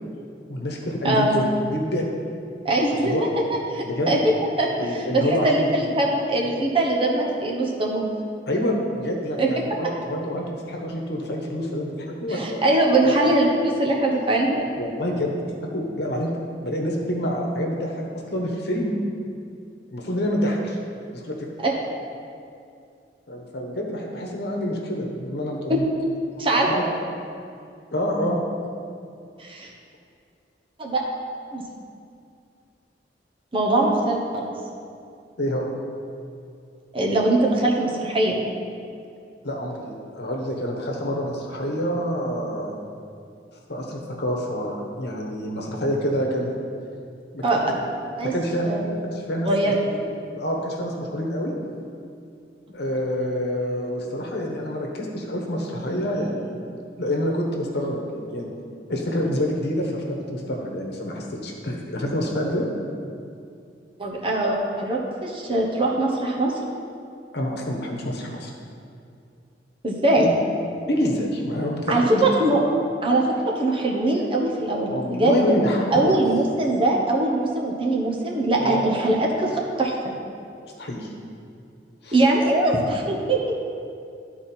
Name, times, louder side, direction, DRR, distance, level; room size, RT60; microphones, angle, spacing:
voice 1, 0.5-2.1 2.9-3.2 3.8-4.2 4.8-5.7 8.5-12.6 13.0-13.3 14.8-16.3 16.6-17.9 18.3-19.0 19.9-20.8 21.1-21.4 23.3-25.8 26.7-26.8 27.9-28.4 35.4-35.7 39.4-42.7 43.7-46.5 47.3-47.5 48.2-48.7 49.0-50.0 50.3-51.5 52.7-56.5 57.0-58.5 58.9-62.7 67.3-68.5 70.9-72.2 74.9-76.2 78.6-78.9 80.6-81.1 82.0-82.2, equal, 65° left, 0 dB, 1.2 m, -27 dB
voice 2, 1.0-1.4 2.6-3.1 3.5-4.3 4.6-8.1 9.4-9.5 12.3-14.7 21.6-21.7 25.7-25.8 26.4-26.7 29.4-29.7 30.8-31.0 31.5-31.6 33.5-34.5 36.9-38.4 47.4-47.6 48.2-48.3 48.6-48.8 49.4-49.7 64.0-66.5 69.8-70.3 71.9-72.6 73.0-73.2 73.6-75.4 75.9-79.5 79.8-79.9 82.1-83.6, right 2 dB, 30° right, -2 dB, 1.0 m, -22 dB
11.5 x 4.4 x 4.4 m, 2.5 s
head